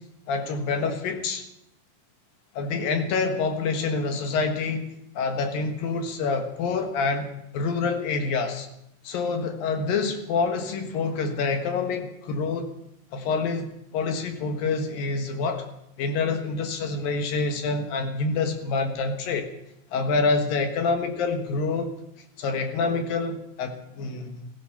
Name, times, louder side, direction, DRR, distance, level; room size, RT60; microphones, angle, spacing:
voice 1, 0.3-1.4 2.5-8.7 9.0-12.7 13.1-15.6 16.0-19.5 19.9-21.9 22.4-24.5, left 4 dB, 75° left, 6 dB, 3.2 m, -27 dB
16.5 x 15.5 x 5.7 m, 0.81 s
omnidirectional pair, 4.2 m